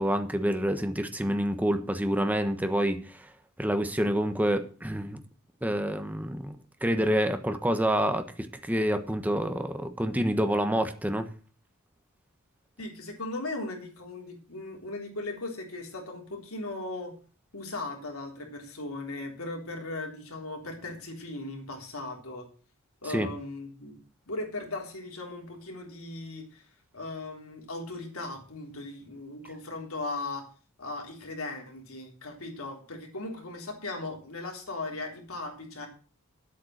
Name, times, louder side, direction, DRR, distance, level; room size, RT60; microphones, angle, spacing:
voice 1, 0.0-3.2 3.6-5.2 5.6-6.6 6.8-11.3 23.1-23.3, equal, 5° right, 1.1 m, -27 dB
voice 2, 12.8-17.1 17.5-22.5 23.0-24.0 24.3-26.6 26.9-30.5 30.8-35.9, left 2 dB, 75° left, 3.5 m, -38 dB
10.5 x 8.3 x 6.5 m
head